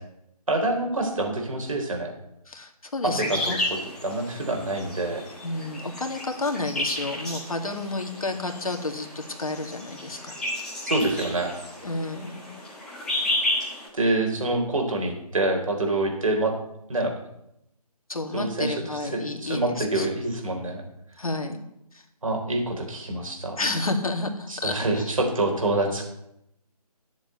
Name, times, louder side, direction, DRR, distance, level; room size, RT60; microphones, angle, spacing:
voice 1, 0.5-2.1 3.0-3.4 4.0-5.2 10.8-11.5 13.9-16.5 16.9-17.1 18.3-18.8 19.1-20.8 22.2-23.6 24.5-26.0, right 2 dB, 55° right, 2 dB, 4.0 m, -26 dB
voice 2, 2.5-3.6 5.4-10.4 11.8-12.5 18.1-20.1 21.2-21.6 21.9-22.0 23.6-25.1, left 2 dB, 65° left, 4 dB, 2.2 m, -30 dB
sound 1, 3.1-13.9, left 1 dB, 5° left, 1.9 m, -32 dB
12.0 x 7.5 x 8.1 m, 0.80 s
figure-of-eight pair, 155°, 20 cm